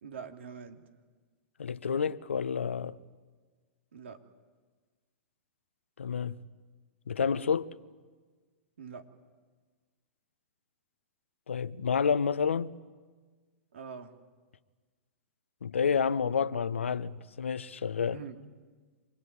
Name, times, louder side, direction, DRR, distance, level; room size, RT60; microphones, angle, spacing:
voice 1, 0.0-0.8 3.9-4.2 8.8-9.0 13.7-14.2 18.0-18.4, right 6 dB, 75° right, 2.7 m, -44 dB
voice 2, 1.6-3.0 6.0-6.4 7.1-7.7 11.5-12.8 15.6-18.2, left 6 dB, 85° left, 0.9 m, -29 dB
27.0 x 21.0 x 9.7 m
hypercardioid pair, 110°, 7 cm